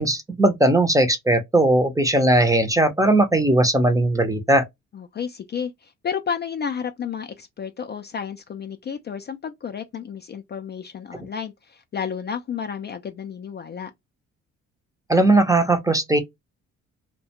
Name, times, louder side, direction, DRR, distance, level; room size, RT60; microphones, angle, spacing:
voice 1, 0.0-4.6 15.1-16.2, right 1 dB, 10° right, 0.6 m, -18 dB
voice 2, 4.9-13.9, left 7 dB, 35° left, 0.4 m, -31 dB
2.3 x 2.1 x 2.8 m
cardioid pair, 90°, 30 cm